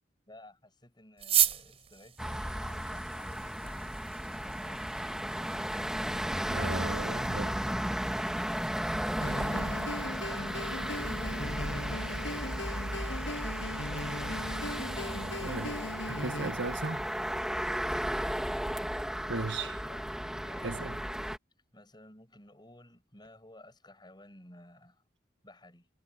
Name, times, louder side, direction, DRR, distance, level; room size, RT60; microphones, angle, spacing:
voice 1, 0.3-5.1 10.2-12.5 13.0-14.7 19.5-20.1 20.4-21.1 21.7-25.0 25.4-25.9, left 1 dB, 25° left, 7.7 m, -55 dB
sound 1, 1.2-15.9, right 10 dB, 35° right, 4.2 m, -39 dB
sound 2, 2.2-21.4, equal, 5° right, 1.9 m, -34 dB
voice 2, 6.4-7.6 15.4-15.8 16.1-17.1 19.3-19.7 20.6-21.0, right 3 dB, 70° right, 1.5 m, -36 dB
sound 3, 9.2-16.5, left 1 dB, 85° left, 7.0 m, -39 dB
head